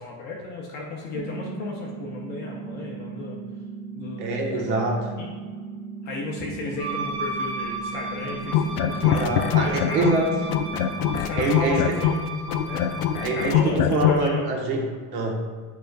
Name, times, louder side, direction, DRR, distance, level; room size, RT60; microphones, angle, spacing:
voice 1, 0.0-3.4 4.0-4.8 5.2-5.3 6.0-9.2 9.6-10.1 11.2-12.3 12.6-13.0 13.3-13.8 14.0-14.4, left 3 dB, 25° left, -2 dB, 0.5 m, -34 dB
sound 1, 1.1-11.2, right 5 dB, 50° right, 0.7 m, -37 dB
voice 2, 4.2-4.9 9.0-10.3 11.3-11.8 13.2-15.4, right 2 dB, 70° right, 0 dB, 1.6 m, -25 dB
Wind instrument woodwind instrument, 6.8-13.6, right 2 dB, 30° right, 1.1 m, -35 dB
sound 2, 8.4-10.2 10.5-14.2, left 9 dB, 70° left, 0.6 m, -23 dB
9.1 x 5.0 x 2.5 m, 1.5 s
supercardioid pair, 175°, 48 cm